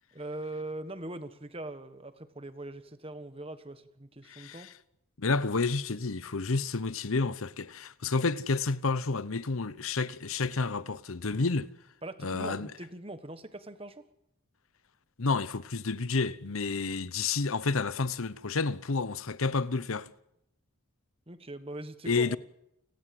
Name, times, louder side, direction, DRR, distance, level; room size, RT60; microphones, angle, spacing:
voice 1, 0.1-4.7 12.0-14.1 21.3-22.4, right 1 dB, 25° right, 1.4 m, -41 dB
voice 2, 4.3-4.7 5.2-11.7 12.2-12.7 15.2-20.1 22.1-22.4, left 4 dB, 75° left, 0.9 m, -30 dB
29.5 x 18.0 x 7.8 m
head